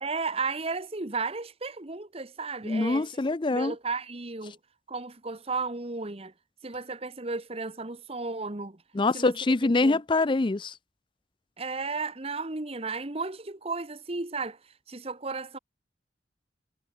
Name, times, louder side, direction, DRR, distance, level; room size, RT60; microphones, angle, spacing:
voice 1, 0.0-3.2 3.5-4.6 4.9-6.3 6.6-8.8 9.1-9.3 9.8-10.0 11.6-14.6 14.9-15.6, right 4 dB, 35° right, 1.3 m, -34 dB
voice 2, 2.7-3.7 9.0-10.7, left 2 dB, 25° left, 0.5 m, -24 dB
head